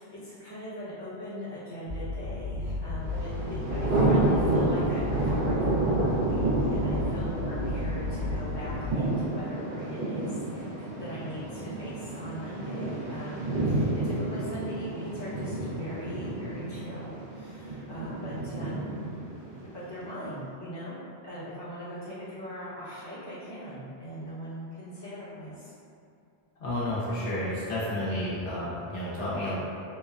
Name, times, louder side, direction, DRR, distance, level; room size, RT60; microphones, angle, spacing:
voice 1, 0.0-19.1 19.6-21.0 21.2-25.7, equal, 25° left, -12 dB, 0.7 m, -41 dB
sound 1, 1.9-8.9, left 3 dB, 80° right, 0.9 m, -33 dB
Thunder, 3.0-20.0, right 2 dB, 60° right, 0.6 m, -30 dB
voice 2, 26.6-29.6, left 1 dB, 85° left, -8 dB, 1.1 m, -31 dB
3.1 x 2.0 x 2.4 m, 2.5 s
omnidirectional pair, 1.1 m